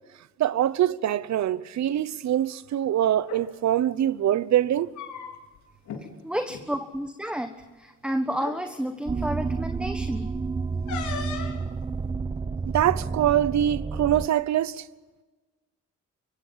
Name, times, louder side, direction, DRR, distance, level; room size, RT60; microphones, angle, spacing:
voice 1, 0.4-4.9 12.7-14.9, right 11 dB, 65° right, 0.9 m, -24 dB
sound 1, 3.2-3.4 4.7-5.6 5.9-6.0 6.4-6.6 7.6-7.7 8.3-8.6 10.9-11.6, left 6 dB, 75° left, 4.3 m, -36 dB
voice 2, 6.2-10.3, equal, 5° right, 1.4 m, -31 dB
sound 2, 9.1-14.3, right 4 dB, 20° right, 0.9 m, -30 dB
25.0 x 23.0 x 7.5 m
cardioid pair, 90°, 30 cm